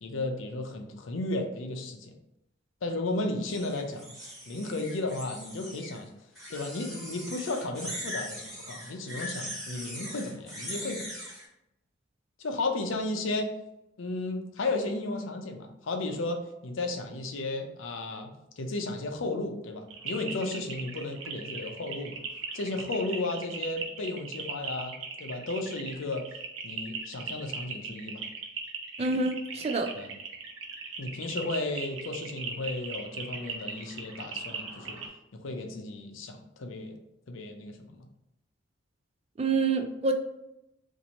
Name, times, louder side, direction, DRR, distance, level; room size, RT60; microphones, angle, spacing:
voice 1, 0.0-2.1 2.8-4.2 4.5-6.1 6.5-11.1 12.4-13.5 14.0-18.3 18.6-22.2 22.5-26.2 26.6-28.2 29.9-30.1 31.0-35.0 35.4-37.0 37.3-38.1, left 2 dB, 80° left, 4 dB, 0.5 m, -34 dB
sound 1, 3.5-6.0 6.3-11.5, equal, ahead, 1.3 m, -40 dB
sound 2, 19.9-35.1, right 5 dB, 75° right, 0.6 m, -39 dB
voice 2, 29.0-29.9 39.4-40.1, right 3 dB, 30° right, 5 dB, 0.3 m, -27 dB
2.9 x 2.6 x 4.0 m, 0.86 s
head